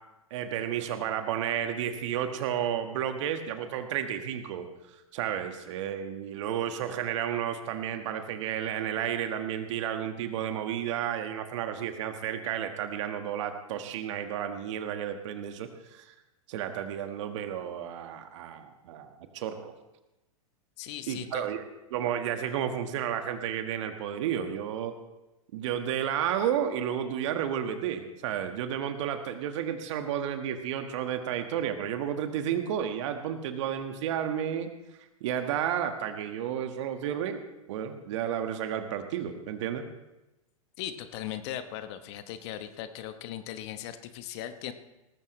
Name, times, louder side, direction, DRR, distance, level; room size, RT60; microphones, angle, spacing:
voice 1, 0.3-4.7 5.1-16.1 16.5-19.7 21.1-21.6 21.9-25.0 25.5-34.7 35.2-37.4 37.7-39.8, right 9 dB, 55° right, 7 dB, 1.6 m, -32 dB
voice 2, 20.8-21.5 40.8-44.7, left 11 dB, 50° left, 10 dB, 1.1 m, -38 dB
18.5 x 14.5 x 3.2 m, 0.98 s
hypercardioid pair, 105°, 18 cm